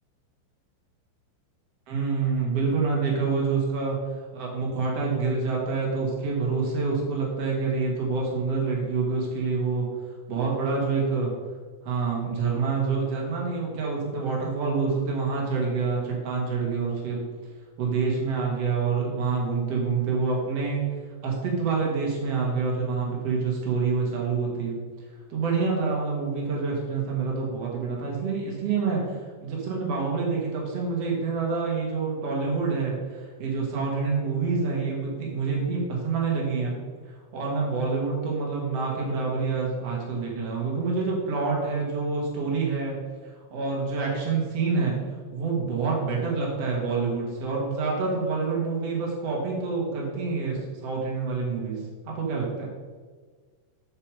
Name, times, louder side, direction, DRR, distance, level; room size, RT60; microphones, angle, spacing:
voice 1, 1.9-4.0 4.3-9.9 10.3-11.3 11.8-17.2 17.8-20.8 21.2-24.8 25.3-29.0 29.4-36.7 37.3-42.9 43.5-45.0 45.3-52.7, right 4 dB, 70° right, -3 dB, 1.5 m, -27 dB
9.1 x 7.0 x 4.9 m, 1.5 s
omnidirectional pair, 6.0 m